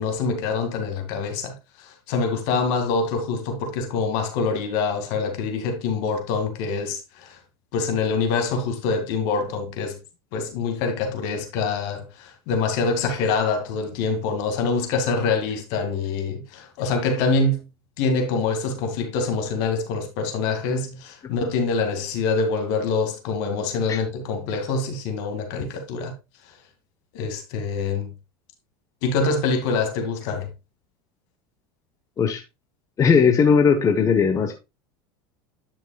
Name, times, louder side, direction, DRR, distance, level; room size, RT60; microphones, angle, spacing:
voice 1, 0.0-7.4 7.7-10.0 10.3-17.6 18.0-26.1 27.1-28.1 29.0-30.5, left 4 dB, 65° left, 2.3 m, -25 dB
voice 2, 33.0-34.5, left 6 dB, 25° left, 1.1 m, -18 dB
10.5 x 6.0 x 2.3 m
supercardioid pair, 125°, 12 cm